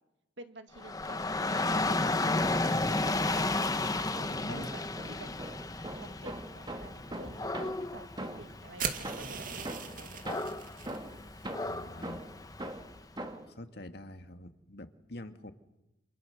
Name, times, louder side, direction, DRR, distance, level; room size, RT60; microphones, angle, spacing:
voice 1, 0.4-2.0 2.4-2.6 3.9-4.0 4.5-5.3 6.0-8.1 8.4-10.7, right 1 dB, 70° right, 7 dB, 2.2 m, -49 dB
Dog / Rain, 0.8-12.9, left 2 dB, 20° left, 1.0 m, -33 dB
sound 1, 2.9-3.8 4.1-8.6 9.0-13.6, right 1 dB, 25° right, 2.2 m, -43 dB
voice 2, 4.2-4.7 11.6-12.2 13.5-15.5, left 1 dB, 60° left, 7 dB, 1.9 m, -46 dB
sound 2, 8.8-11.0, right 6 dB, 45° right, 2.1 m, -38 dB
29.0 x 27.5 x 6.9 m, 0.94 s
head